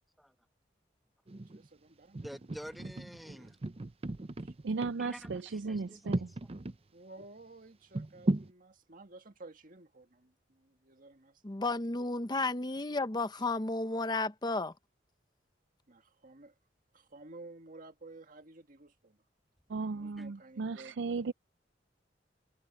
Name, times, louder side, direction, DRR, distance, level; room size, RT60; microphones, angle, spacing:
sound 1, 1.3-1.7 2.1-6.8 7.2-7.3 7.9-8.5, right 2 dB, 35° right, 0.6 m, -36 dB
voice 1, 1.5-2.3 4.4-5.1 6.9-11.4 12.7-12.9 13.3-13.4 15.9-16.5 16.9-19.2 19.8-21.2, right 2 dB, 50° right, 1.9 m, -53 dB
voice 2, 2.2-3.6 5.0-6.3 20.2-20.3, equal, ahead, 1.1 m, -48 dB
voice 3, 4.6-6.3 19.7-21.3, right 4 dB, 75° right, 0.5 m, -36 dB
voice 4, 11.4-14.7, left 2 dB, 25° left, 0.9 m, -33 dB
head